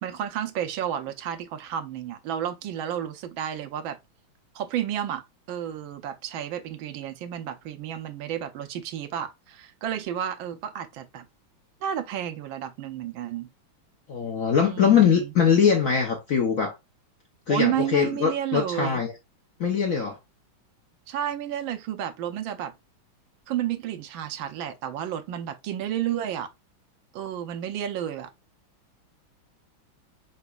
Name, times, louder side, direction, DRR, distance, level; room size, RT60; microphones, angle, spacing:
voice 1, 0.0-4.0 4.5-11.2 11.8-13.5 14.6-15.3 17.5-19.0 21.1-22.7 23.5-26.5 27.1-28.3, right 10 dB, 75° right, 1.4 m, -31 dB
voice 2, 14.1-16.7 17.5-19.1 19.6-20.2, left 7 dB, 60° left, 0.8 m, -22 dB
4.4 x 4.0 x 2.3 m
omnidirectional pair, 2.3 m